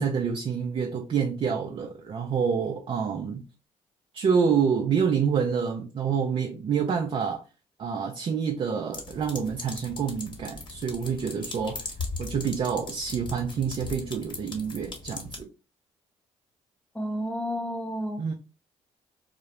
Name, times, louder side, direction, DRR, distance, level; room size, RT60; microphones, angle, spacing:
voice 1, 0.0-3.4 4.1-7.4 7.8-11.9 12.2-15.5 18.2-18.3, right 6 dB, 45° right, 0.4 m, -27 dB
sound 1, 8.9-15.4, left 3 dB, 40° left, 0.9 m, -39 dB
voice 2, 16.9-18.3, equal, 10° left, 0.6 m, -31 dB
2.3 x 2.0 x 2.9 m
supercardioid pair, 70°, 12 cm